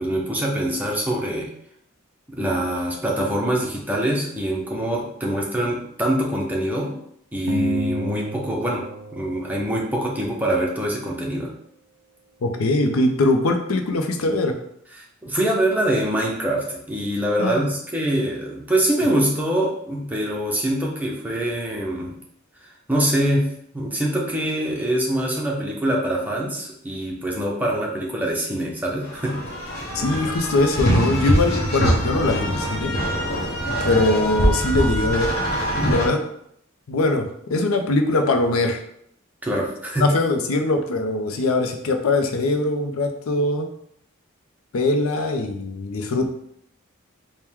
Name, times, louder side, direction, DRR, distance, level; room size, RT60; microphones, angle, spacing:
voice 1, 0.0-1.5 2.3-6.9 7.3-8.8 9.1-11.5 15.0-22.1 22.9-29.4 39.4-40.1, right 1 dB, 10° right, -2 dB, 0.6 m, -24 dB
sound 1, 7.5-10.1, left 1 dB, 75° right, 0.5 m, -31 dB
voice 2, 12.4-14.6 17.4-17.7 29.9-32.9 33.8-35.3 35.8-36.2 36.9-38.8 40.0-43.7 44.7-46.3, left 2 dB, 85° left, 5 dB, 0.5 m, -22 dB
sound 2, 29.1-36.1, equal, 45° left, 1.0 m, -23 dB
4.4 x 2.2 x 3.5 m, 0.71 s
head